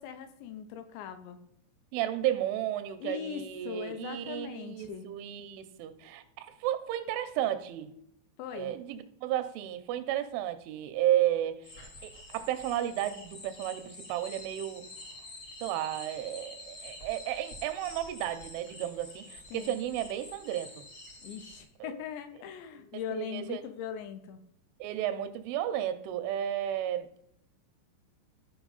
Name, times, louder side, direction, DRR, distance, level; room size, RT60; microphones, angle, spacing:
voice 1, 0.0-1.4 3.0-5.1 8.4-8.7 19.5-19.8 21.2-24.4, left 8 dB, 80° left, 2.8 m, -40 dB
voice 2, 1.9-7.9 8.5-11.7 12.0-14.9 15.6-20.8 21.8-21.9 22.7-23.6 24.8-27.3, right 12 dB, 90° right, 3.1 m, -33 dB
sound 1, 11.6-21.6, left 2 dB, 50° left, 0.9 m, -48 dB
13.5 x 4.9 x 3.9 m
omnidirectional pair, 5.5 m